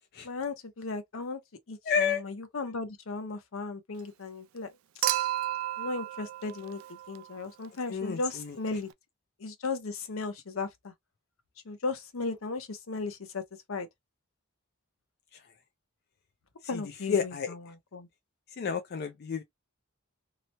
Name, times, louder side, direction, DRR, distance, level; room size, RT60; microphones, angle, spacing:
voice 1, 0.2-1.4 1.7-4.8 5.8-8.9 9.4-10.9 11.6-13.4 13.7-13.9 16.7-18.1, left 3 dB, 75° left, 0.7 m, -36 dB
voice 2, 1.9-2.2 7.9-8.5 16.7-16.8 17.1-17.5 18.6-19.4, left 6 dB, 50° left, 0.4 m, -30 dB
Human group actions / Chink clink / Liquid, 5.0-7.4 8.9-9.0, right 13 dB, 75° right, 0.3 m, -32 dB
2.9 x 2.0 x 2.8 m
head